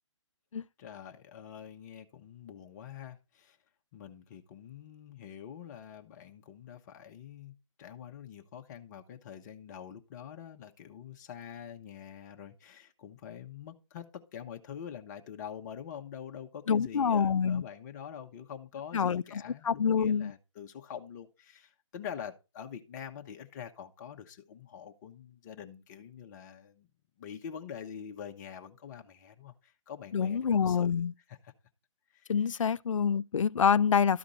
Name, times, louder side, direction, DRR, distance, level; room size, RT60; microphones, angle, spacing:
voice 1, 0.8-3.6 3.9-26.9 27.2-31.0 31.3-31.5 32.1-32.7, left 8 dB, 35° left, 1.0 m, -45 dB
voice 2, 16.7-17.6 18.9-20.3 30.1-31.1 32.3-34.2, left 7 dB, 70° left, 0.4 m, -27 dB
12.5 x 5.1 x 4.1 m
figure-of-eight pair, 140°, 17 cm